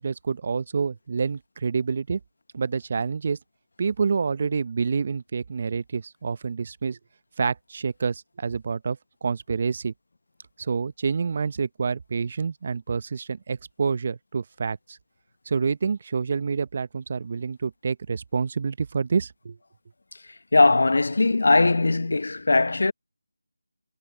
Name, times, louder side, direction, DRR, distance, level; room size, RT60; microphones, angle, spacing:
voice 1, 0.0-2.2 2.5-3.4 3.8-7.0 7.4-9.9 10.6-15.0 15.5-19.6, right 5 dB, 40° right, 0.8 m, -27 dB
voice 2, 20.5-22.9, left 3 dB, 65° left, 1.0 m, -19 dB
figure-of-eight pair, 165°, 0 cm